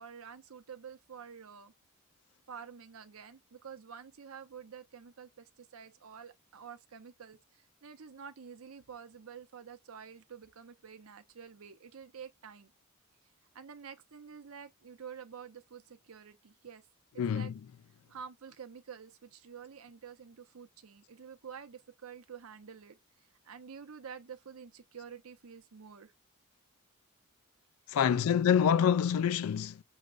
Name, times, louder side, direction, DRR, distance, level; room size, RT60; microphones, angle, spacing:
voice 1, 0.0-1.7 2.5-12.7 13.5-16.8 17.3-17.5 18.1-26.1 28.1-28.4, right 7 dB, 75° right, 0.7 m, -49 dB
voice 2, 17.2-17.5 27.9-29.8, left 8 dB, 80° left, 0.3 m, -26 dB
6.3 x 2.1 x 2.4 m
head